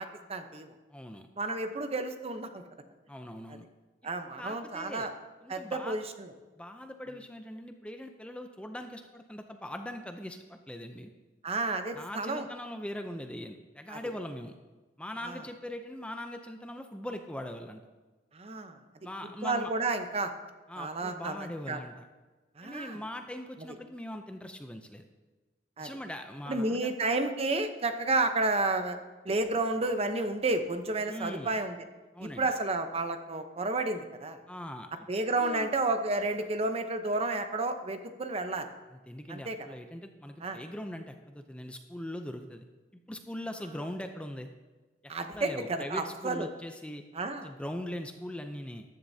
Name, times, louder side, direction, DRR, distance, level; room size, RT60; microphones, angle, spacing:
voice 1, 0.0-0.7 1.4-2.6 3.5-3.6 4.0-5.1 5.5-6.3 11.4-12.5 13.9-14.0 15.2-15.4 18.3-18.8 19.4-20.3 20.8-21.8 22.6-23.0 25.8-25.9 26.5-29.0 29.2-31.8 32.2-34.4 35.1-38.7 39.3-39.6 40.4-40.6 45.1-46.5 47.1-47.5, right 2 dB, 35° right, 7 dB, 0.8 m, -31 dB
voice 2, 0.9-1.3 3.1-3.7 4.4-5.1 5.4-6.0 6.6-11.1 11.9-14.6 15.0-17.8 19.0-19.7 20.7-22.1 22.6-25.1 25.8-26.9 31.1-31.5 32.1-32.5 34.5-34.9 35.4-35.7 39.1-42.6 43.1-44.5 45.0-47.0 47.4-48.8, left 1 dB, 5° left, 6 dB, 0.5 m, -41 dB
14.0 x 10.5 x 2.8 m, 1.2 s
head